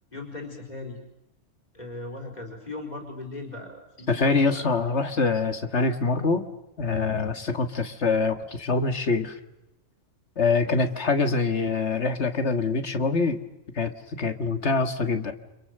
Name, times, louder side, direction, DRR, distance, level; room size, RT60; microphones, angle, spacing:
voice 1, 0.1-1.0 1.7-4.7 10.6-11.0, left 2 dB, 35° left, 4 dB, 4.7 m, -38 dB
voice 2, 4.1-6.4 6.8-9.3 10.4-13.4 13.8-15.3, left 4 dB, 60° left, 8 dB, 2.0 m, -24 dB
29.5 x 27.0 x 6.6 m, 0.90 s
omnidirectional pair, 1.3 m